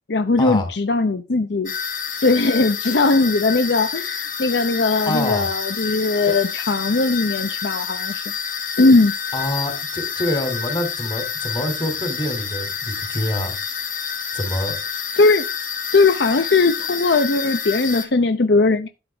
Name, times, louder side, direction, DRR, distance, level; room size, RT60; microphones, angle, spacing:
voice 1, 0.1-1.7 2.2-8.2 8.8-9.1 15.2-15.5 15.9-18.9, left 3 dB, 70° left, 0.7 m, -19 dB
sound 1, 1.7-18.1, left 7 dB, 45° left, 2.3 m, -28 dB
voice 2, 5.1-5.5 6.3-6.4 9.3-13.5 14.3-14.8, left 1 dB, 25° left, 2.6 m, -26 dB
12.0 x 7.9 x 3.4 m
head